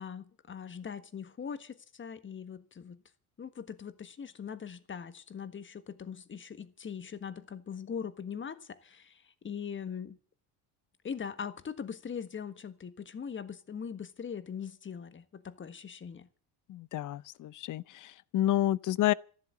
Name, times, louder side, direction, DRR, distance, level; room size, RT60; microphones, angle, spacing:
voice 1, 0.0-3.0 3.4-10.2 11.0-16.3, left 7 dB, 25° left, 1.5 m, -41 dB
voice 2, 16.7-19.1, left 13 dB, 45° left, 0.7 m, -29 dB
13.5 x 12.0 x 8.4 m
supercardioid pair, 105°, 43 cm